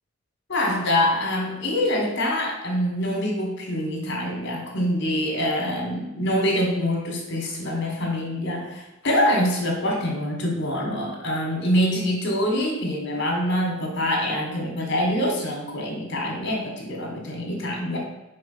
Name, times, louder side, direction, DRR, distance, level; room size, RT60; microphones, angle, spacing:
voice 1, 0.5-18.0, left 1 dB, 55° left, 0 dB, 1.6 m, -25 dB
5.3 x 3.6 x 5.6 m, 1.0 s
head